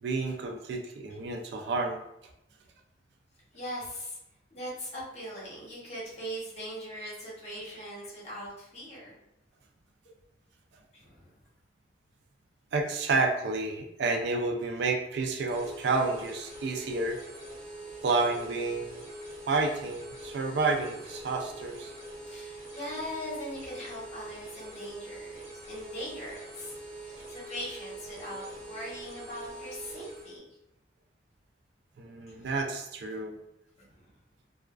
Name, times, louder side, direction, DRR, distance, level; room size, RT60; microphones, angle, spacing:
voice 1, 0.0-2.0 12.7-17.2 18.0-19.0 19.5-21.9 32.0-33.4, right 3 dB, 65° right, 3 dB, 0.3 m, -30 dB
voice 2, 3.5-4.2 4.5-9.1 10.9-11.3 22.2-25.4 25.7-30.4 32.3-32.6 33.8-34.1, equal, 35° left, -6 dB, 0.9 m, -40 dB
sound 1, 15.4-30.4, right 1 dB, 45° right, 1.3 m, -44 dB
2.3 x 2.3 x 2.2 m, 0.86 s
head